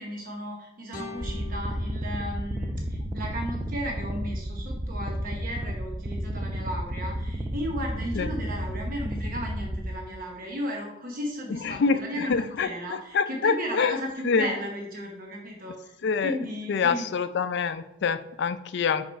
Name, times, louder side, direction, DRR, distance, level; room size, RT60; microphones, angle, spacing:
voice 1, 0.0-15.9 16.2-17.1, equal, 45° right, 0 dB, 0.9 m, -35 dB
sound 1, 0.9-3.9, left 3 dB, 45° left, 1.0 m, -45 dB
sound 2, 1.2-9.9, equal, 15° right, 0.5 m, -32 dB
voice 2, 11.6-14.0 14.2-14.5 16.0-16.4 16.7-19.1, left 5 dB, 60° left, 12 dB, 0.4 m, -26 dB
5.3 x 4.8 x 4.5 m, 0.85 s
head